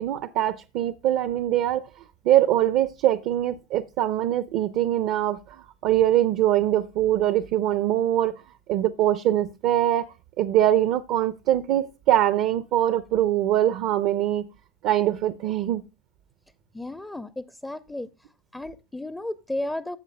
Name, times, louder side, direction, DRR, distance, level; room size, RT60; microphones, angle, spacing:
voice 1, 0.0-1.8 2.2-8.4 8.7-10.1 10.4-14.5 14.8-15.8, right 12 dB, 60° right, 0.6 m, -23 dB
voice 2, 16.7-18.1 18.5-20.0, left 1 dB, 10° left, 0.5 m, -33 dB
13.5 x 7.2 x 2.2 m
hypercardioid pair, 80°, 0 cm